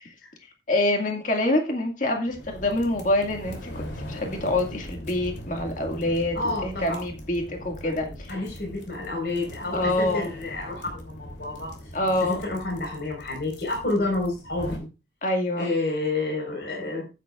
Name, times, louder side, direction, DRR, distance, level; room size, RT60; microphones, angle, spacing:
voice 1, 0.7-6.4 6.6-8.4 9.7-10.3 11.9-12.4 15.2-15.7, left 1 dB, 45° left, 2 dB, 2.1 m, -26 dB
sound 1, 2.3-14.8, equal, 75° left, 3.1 m, -40 dB
voice 2, 6.3-7.0 7.8-11.7 12.3-14.9 15.6-17.1, left 2 dB, 60° left, -1 dB, 4.8 m, -29 dB
14.0 x 9.5 x 2.5 m, 0.30 s
head